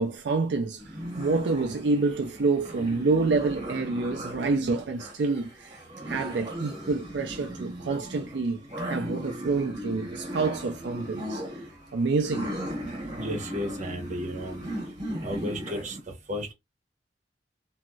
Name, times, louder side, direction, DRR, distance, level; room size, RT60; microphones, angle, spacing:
voice 1, 0.0-5.8 6.1-8.6 8.9-11.4 11.9-12.5, right 3 dB, 80° right, 0.4 m, -27 dB
sound 1, 0.8-16.0, equal, 25° right, 1.2 m, -37 dB
voice 2, 13.2-14.6 15.2-16.5, equal, 45° right, 1.0 m, -34 dB
3.0 x 2.7 x 2.3 m
head